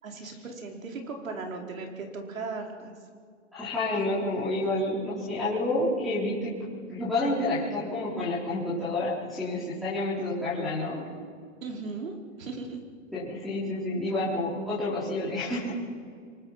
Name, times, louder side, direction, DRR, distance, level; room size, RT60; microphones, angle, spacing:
voice 1, 0.0-2.9 11.6-12.8, right 3 dB, 90° right, 2 dB, 4.8 m, -37 dB
voice 2, 3.5-6.5 6.9-11.1 13.1-15.8, left 2 dB, ahead, -13 dB, 4.4 m, -29 dB
28.5 x 24.0 x 6.0 m, 2.1 s
hypercardioid pair, 165°, 39 cm